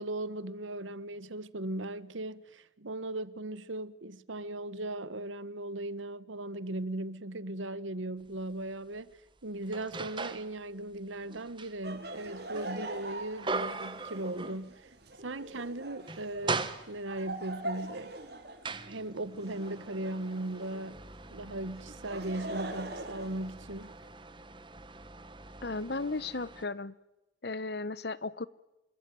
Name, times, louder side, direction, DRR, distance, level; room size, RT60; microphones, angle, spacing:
voice 1, 0.0-9.1 9.4-14.9 15.2-18.2 18.8-21.0 21.3-23.9, right 1 dB, 85° right, 1.3 m, -38 dB
sound 1, 8.3-8.4 9.0-10.5 10.9-15.0 15.4-15.5 15.9-17.3 18.0-26.6, right 3 dB, 25° right, 1.4 m, -40 dB
Laughter, 11.8-20.9 21.8-24.1, right 2 dB, 55° right, 3.8 m, -43 dB
voice 2, 25.6-26.9 27.4-28.5, left 3 dB, 55° left, 1.0 m, -35 dB
27.0 x 23.5 x 9.3 m
head